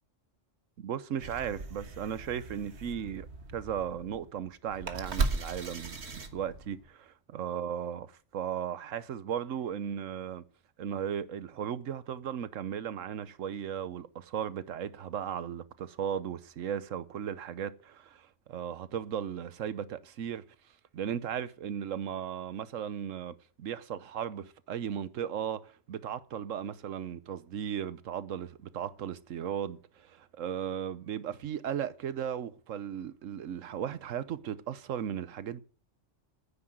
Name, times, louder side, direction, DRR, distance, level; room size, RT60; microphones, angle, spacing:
voice 1, 0.8-3.3 3.5-8.1 8.3-10.4 10.8-20.4 20.9-35.6, right 9 dB, 90° right, 1.2 m, -36 dB
sound 1, 1.2-6.9, right 3 dB, 60° right, 1.6 m, -37 dB
9.8 x 9.5 x 7.8 m
omnidirectional pair, 1.3 m